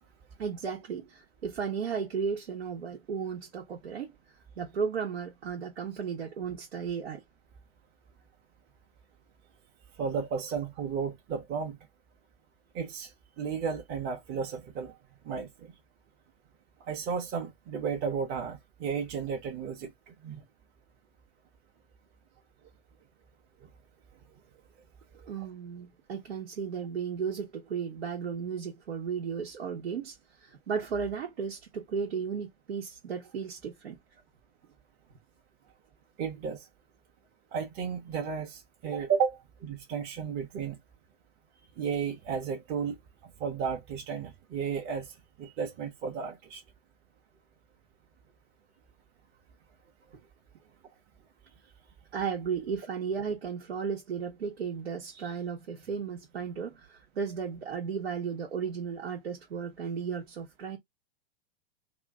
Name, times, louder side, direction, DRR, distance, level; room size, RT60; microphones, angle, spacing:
voice 1, 0.4-4.1 4.6-7.2 25.3-34.0 38.8-39.0 52.1-60.8, right 6 dB, 85° right, 1.3 m, -35 dB
voice 2, 10.0-11.8 12.7-13.1 13.4-14.9 15.2-15.7 16.9-19.9 20.2-20.4 36.2-36.6 37.5-40.8 41.8-43.0 43.4-45.1 45.4-46.6, right 6 dB, 35° right, 1.0 m, -33 dB
3.0 x 2.7 x 3.6 m
hypercardioid pair, 120°, 31 cm